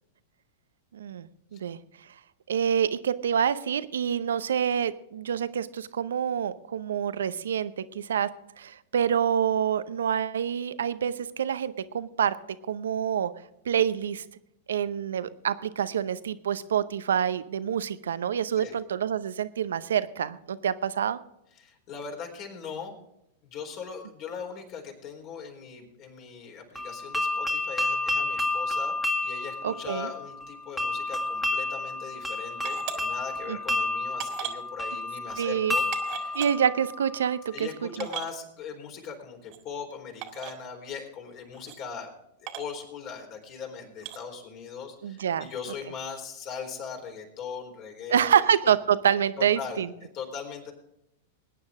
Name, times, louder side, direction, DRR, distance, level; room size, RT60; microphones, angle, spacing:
voice 1, 0.9-1.8 2.5-8.3 8.6-12.4 12.7-13.3 13.7-14.2 14.7-21.2 29.6-30.1 33.5-33.6 35.4-35.7 36.3-37.7 38.0-38.1 45.0-45.5 48.1-49.9, right 8 dB, 75° right, 15 dB, 0.7 m, -27 dB
voice 2, 21.5-22.9 23.4-29.0 29.2-36.4 37.5-42.1 42.4-48.5 49.4-50.7, left 6 dB, 45° left, 2 dB, 4.0 m, -40 dB
sound 1, 26.8-37.6, left 2 dB, ahead, 1.9 m, -30 dB
sound 2, 32.6-33.0 33.7-33.8 34.2-34.6 35.4-35.5 35.9-36.5 37.3-37.4 37.6-37.7 38.0-38.3 39.5-39.6 40.2-40.5 41.5-41.8 42.5-42.7 44.0-44.2, right 12 dB, 50° right, 2.0 m, -37 dB
21.0 x 9.7 x 3.6 m, 0.82 s
hypercardioid pair, 105°, 0 cm